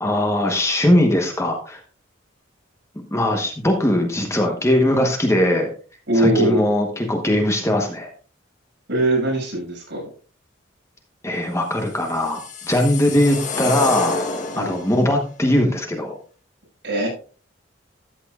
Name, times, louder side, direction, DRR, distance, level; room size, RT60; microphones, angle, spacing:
voice 1, 0.0-1.8 3.1-5.7 6.1-8.1 11.2-14.2 14.5-16.2, left 1 dB, 15° left, 3 dB, 1.0 m, -20 dB
voice 2, 6.1-6.6 8.9-10.1 14.5-14.8 16.8-17.1, right 1 dB, 65° right, -2 dB, 5.8 m, -21 dB
sound 1, 11.9-15.1, left 3 dB, 40° left, 1.1 m, -28 dB
13.0 x 8.5 x 2.4 m, 0.39 s
head